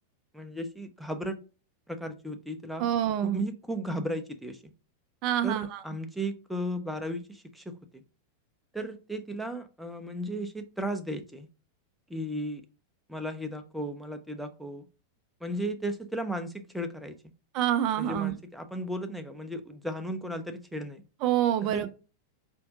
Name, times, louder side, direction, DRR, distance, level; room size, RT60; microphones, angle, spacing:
voice 1, 0.3-1.4 1.9-2.9 3.2-4.6 5.4-8.0 8.7-11.5 12.1-12.6 13.1-14.9 15.4-17.2 18.0-21.0 21.6-21.8, right 1 dB, ahead, 7 dB, 0.6 m, -35 dB
voice 2, 2.8-3.4 5.2-5.8 17.5-18.3 21.2-21.9, right 11 dB, 40° right, 8 dB, 0.3 m, -27 dB
4.4 x 2.5 x 3.5 m, 0.32 s
figure-of-eight pair, 90°, 0 cm